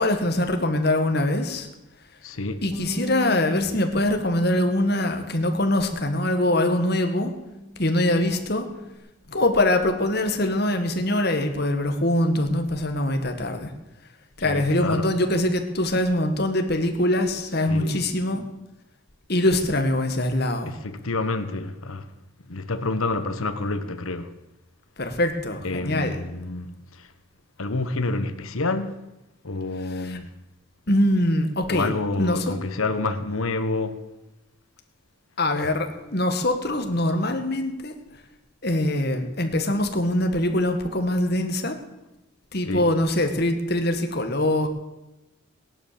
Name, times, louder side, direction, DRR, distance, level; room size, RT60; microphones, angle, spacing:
voice 1, 0.0-1.7 2.6-7.3 7.8-8.7 9.3-13.7 14.4-18.4 19.3-20.8 25.0-26.2 29.9-30.2 30.9-31.9 32.2-32.6 35.4-37.9 38.6-41.8 42.5-44.7, left 1 dB, 50° left, 1.9 m, -23 dB
voice 2, 2.2-2.7 14.4-15.1 17.7-18.1 20.7-22.1 22.5-24.4 25.6-27.1 27.6-29.0 29.4-30.3 31.7-34.0 35.6-35.7 42.7-42.9, left 2 dB, 80° left, 1.3 m, -28 dB
Bass guitar, 2.7-9.0, equal, 25° left, 2.9 m, -37 dB
18.5 x 11.0 x 7.0 m
head